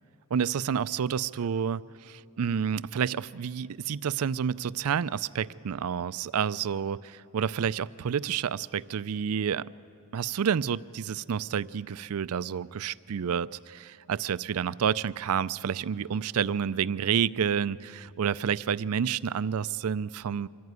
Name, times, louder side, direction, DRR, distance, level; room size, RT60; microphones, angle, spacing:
voice 1, 0.3-9.7 10.1-20.5, right 7 dB, 75° right, 18 dB, 0.4 m, -29 dB
25.0 x 14.5 x 9.6 m, 2.7 s
head